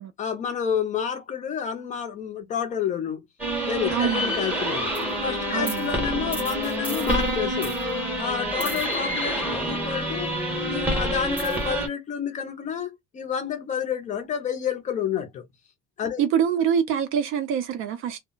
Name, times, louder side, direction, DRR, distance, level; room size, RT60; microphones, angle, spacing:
voice 1, 0.2-3.2 3.7-4.9 5.2-7.8 8.2-10.3 10.6-15.5 16.0-16.2, left 8 dB, 25° left, 0.5 m, -29 dB
sound 1, 3.4-11.9, equal, 5° right, 0.8 m, -27 dB
voice 2, 3.9-4.4 5.5-5.9 16.2-18.2, right 8 dB, 40° right, 0.4 m, -25 dB
2.2 x 2.1 x 3.7 m
cardioid pair, 170°, 32 cm